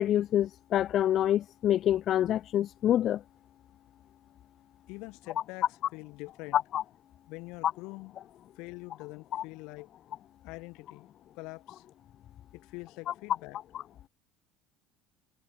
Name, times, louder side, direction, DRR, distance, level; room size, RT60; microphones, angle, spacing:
voice 1, 0.0-3.2 6.5-6.8 9.3-9.4, left 11 dB, 35° left, 0.5 m, -26 dB
voice 2, 4.9-5.7 5.9-6.6 7.3-8.1 8.5-9.9 10.4-11.1 11.3-11.8 12.5-13.6, left 25 dB, 65° left, 3.9 m, -44 dB
cardioid pair, 180°, 0 cm